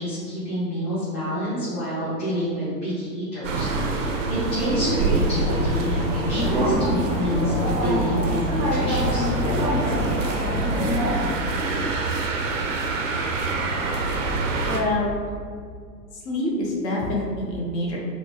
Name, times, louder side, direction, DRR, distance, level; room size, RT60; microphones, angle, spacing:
voice 1, 0.0-9.3, equal, 20° left, -14 dB, 1.1 m, -28 dB
sound 1, 3.4-14.8, right 3 dB, 50° right, 0.5 m, -27 dB
sound 2, 4.6-11.3, equal, 10° right, 0.7 m, -25 dB
voice 2, 14.7-15.2 16.1-18.0, left 1 dB, 40° left, -3 dB, 0.9 m, -26 dB
4.2 x 2.1 x 3.1 m, 2.1 s
figure-of-eight pair, 105°, 50 cm